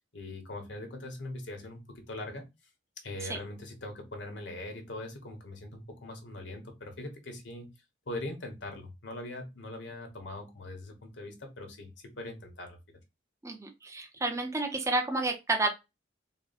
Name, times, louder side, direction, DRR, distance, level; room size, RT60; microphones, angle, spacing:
voice 1, 0.1-2.4 3.0-7.7 8.1-11.9 12.2-13.0, left 2 dB, 65° left, 4 dB, 1.1 m, -41 dB
voice 2, 13.4-15.7, right 2 dB, 15° right, 3 dB, 0.6 m, -30 dB
4.1 x 2.1 x 4.0 m, 0.24 s
head